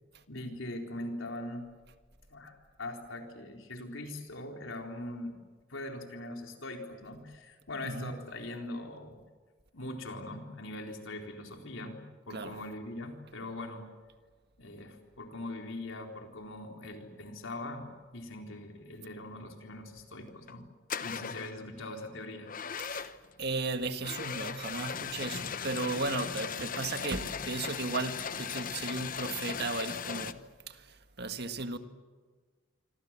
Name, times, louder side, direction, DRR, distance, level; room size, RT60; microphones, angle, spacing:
voice 1, 0.3-1.7 2.3-5.4 5.7-9.2 9.7-13.8 14.6-20.7 21.0-22.8 26.2-26.3 27.4-27.5, left 1 dB, 85° left, 4.1 m, -41 dB
sound 1, 20.3-20.5 20.9-21.6 22.5-23.3 24.0-30.3, left 7 dB, 45° left, 1.0 m, -38 dB
voice 2, 23.4-31.8, right 3 dB, 55° right, 1.7 m, -35 dB
27.0 x 25.5 x 7.6 m
head